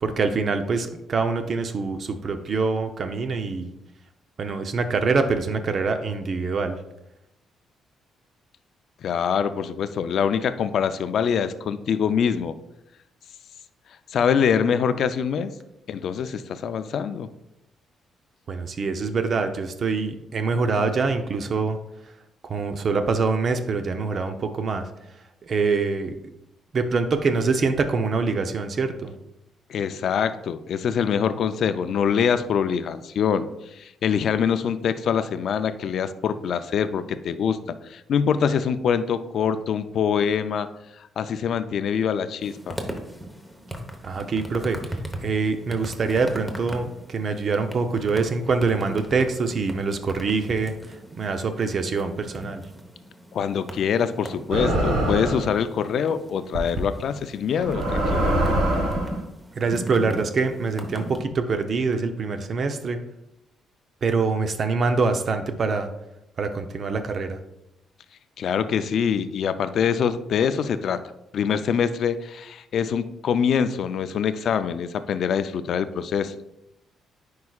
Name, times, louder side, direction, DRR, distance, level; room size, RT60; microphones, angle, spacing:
voice 1, 0.0-3.7 4.4-6.8 18.5-21.8 22.4-24.8 25.4-26.1 26.7-29.1 44.0-44.8 45.1-50.7 51.2-52.6 59.6-63.0 64.0-65.9 66.4-67.4, right 4 dB, 50° right, 8 dB, 0.6 m, -25 dB
voice 2, 9.0-12.6 14.1-15.5 15.9-17.3 29.7-40.7 41.2-42.8 53.3-58.3 68.4-71.0 71.3-76.3, left 7 dB, 65° left, 12 dB, 0.4 m, -24 dB
sound 1, 42.4-61.2, right 1 dB, 10° right, 0.9 m, -38 dB
sound 2, 54.5-55.5 56.5-56.8 57.6-59.2, right 1 dB, 90° right, 1.4 m, -23 dB
9.5 x 4.7 x 2.3 m, 0.87 s
cardioid pair, 90°, 0 cm